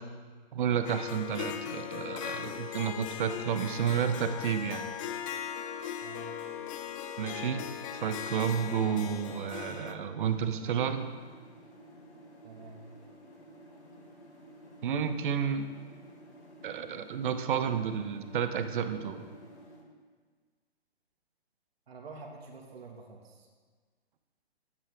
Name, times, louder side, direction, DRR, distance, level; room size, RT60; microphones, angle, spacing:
voice 1, 0.5-4.8 7.2-11.1 14.8-15.7 16.6-19.2, right 7 dB, 50° right, 9 dB, 1.1 m, -31 dB
Harp, 0.9-10.0, left 9 dB, 30° left, 0.8 m, -39 dB
voice 2, 6.0-6.4 12.4-12.8 21.9-23.5, right 4 dB, 65° right, 1 dB, 2.2 m, -47 dB
sound 1, 10.2-19.8, right 1 dB, 85° left, 4.3 m, -53 dB
14.0 x 11.5 x 3.8 m, 1.5 s
hypercardioid pair, 135°, 33 cm